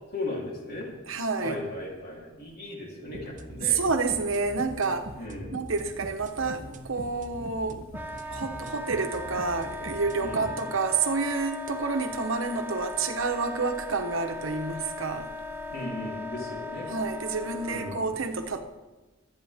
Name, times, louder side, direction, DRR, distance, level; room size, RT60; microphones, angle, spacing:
voice 1, 0.1-0.9 1.4-3.8 5.1-5.6 10.2-10.6 15.7-16.9 17.7-18.1, left 2 dB, 50° left, -2 dB, 3.5 m, -36 dB
voice 2, 1.1-1.6 3.7-5.1 5.5-7.9 8.3-15.3 16.9-18.6, right 4 dB, 75° right, 6 dB, 1.2 m, -29 dB
sound 1, 3.1-10.7, right 1 dB, 40° right, 0.9 m, -42 dB
Wind instrument woodwind instrument, 7.9-18.0, left 2 dB, 10° right, 1.0 m, -38 dB
23.0 x 9.3 x 3.6 m, 1.2 s
head